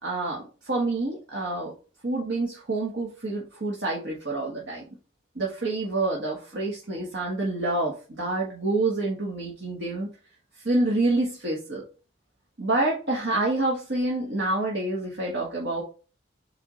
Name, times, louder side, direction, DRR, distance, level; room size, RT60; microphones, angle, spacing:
voice 1, 0.0-1.7 2.0-4.8 5.4-10.1 10.6-11.8 12.6-15.8, right 2 dB, 65° right, -3 dB, 1.6 m, -27 dB
8.1 x 3.6 x 4.0 m, 0.35 s
head